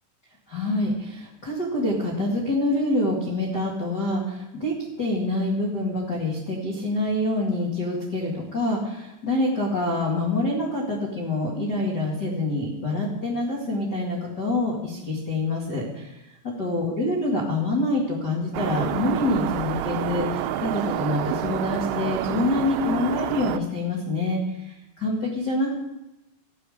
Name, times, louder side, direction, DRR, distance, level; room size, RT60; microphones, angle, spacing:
voice 1, 0.5-25.7, left 2 dB, 50° left, -3 dB, 1.2 m, -26 dB
sound 1, 18.5-23.6, right 12 dB, 80° right, 2.5 m, -28 dB
15.0 x 10.0 x 5.1 m, 0.93 s
omnidirectional pair, 5.6 m